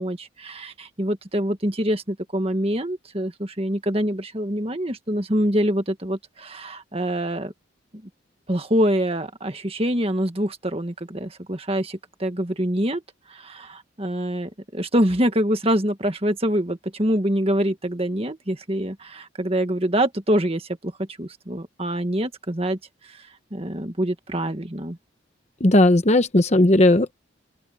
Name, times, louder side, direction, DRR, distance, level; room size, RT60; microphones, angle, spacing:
voice 1, 0.0-7.5 8.5-13.0 13.3-22.8 23.0-25.0, equal, 30° right, 1.7 m, -25 dB
voice 2, 25.6-27.1, left 1 dB, 35° left, 1.0 m, -16 dB
open air
head